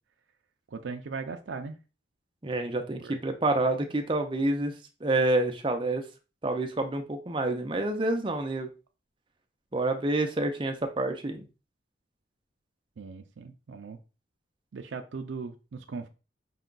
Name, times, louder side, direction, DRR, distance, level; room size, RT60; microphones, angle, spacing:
voice 1, 0.7-1.8 3.0-3.2 13.0-14.0 14.7-16.1, right 4 dB, 80° right, 6 dB, 0.4 m, -38 dB
voice 2, 2.4-6.0 6.4-8.7 9.7-11.5, right 2 dB, 25° right, 5 dB, 0.6 m, -28 dB
5.4 x 2.3 x 3.8 m, 0.32 s
head